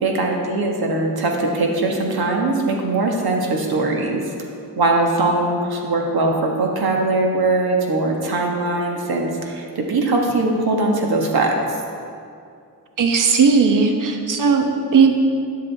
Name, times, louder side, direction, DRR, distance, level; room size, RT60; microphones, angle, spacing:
voice 1, 0.0-4.2 4.8-11.8, right 2 dB, 70° right, 0 dB, 1.5 m, -21 dB
voice 2, 13.0-15.1, right 5 dB, 55° right, 4 dB, 0.9 m, -16 dB
11.5 x 7.6 x 3.5 m, 2.4 s
cardioid pair, 80°, 39 cm